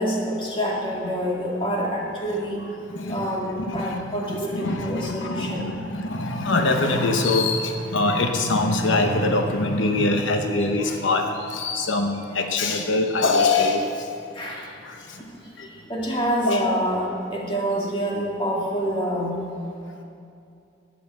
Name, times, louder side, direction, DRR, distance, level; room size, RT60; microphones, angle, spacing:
voice 1, 0.0-2.6 3.1-5.9 14.3-14.7 15.9-19.5, equal, 25° left, -3 dB, 2.3 m, -27 dB
voice 2, 2.9-3.3 3.6-4.0 4.3-14.1 14.8-15.0 15.6-15.7 16.4-16.7, left 2 dB, 90° left, 5 dB, 1.0 m, -23 dB
12.5 x 9.5 x 7.7 m, 2.5 s
head